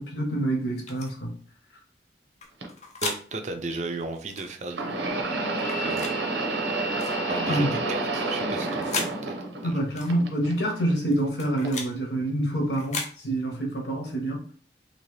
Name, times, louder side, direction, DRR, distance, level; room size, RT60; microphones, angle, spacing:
voice 1, 0.0-1.3 7.5-7.7 9.6-14.5, right 1 dB, 70° left, 0 dB, 1.0 m, -27 dB
sound 1, 0.9-1.1 2.4-3.2 4.3-4.5 5.6-6.2 7.0-7.2 8.4-9.1 10.0-10.1 11.1-11.9 12.7-13.1, left 4 dB, 40° left, 0.6 m, -35 dB
sound 2, 2.6-2.7 4.7-9.8 10.1-10.9 11.6-11.8 12.8-12.9, right 2 dB, 80° right, 0.7 m, -29 dB
voice 2, 3.0-5.2 5.8-6.2 7.3-9.8, right 3 dB, 40° right, 6 dB, 0.4 m, -35 dB
2.9 x 2.7 x 3.2 m, 0.44 s
head